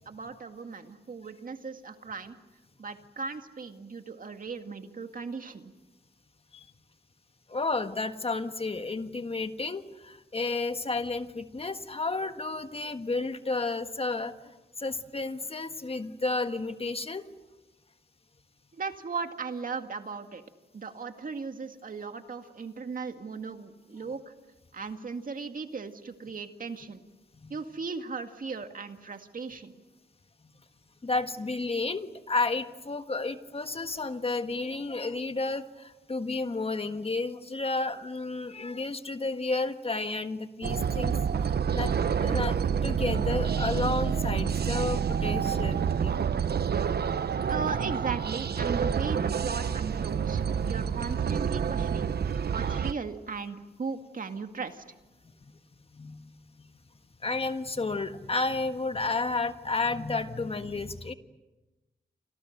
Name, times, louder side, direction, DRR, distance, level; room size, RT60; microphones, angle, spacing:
voice 1, 0.1-2.4 2.8-5.7 18.7-20.4 20.7-24.3 24.7-27.0 27.5-29.7 47.5-52.1 52.5-54.8, right 4 dB, 55° right, 6 dB, 2.1 m, -37 dB
voice 2, 7.5-14.3 14.8-17.2 27.4-27.5 31.0-41.1 41.7-41.9 42.2-46.1 48.8-48.9 55.9-56.3 57.2-61.1, left 3 dB, 35° left, 8 dB, 1.5 m, -31 dB
sound 1, 40.6-52.9, right 7 dB, 70° right, 0.9 m, -28 dB
29.5 x 26.5 x 6.7 m, 1.1 s
cardioid pair, 85°, 17 cm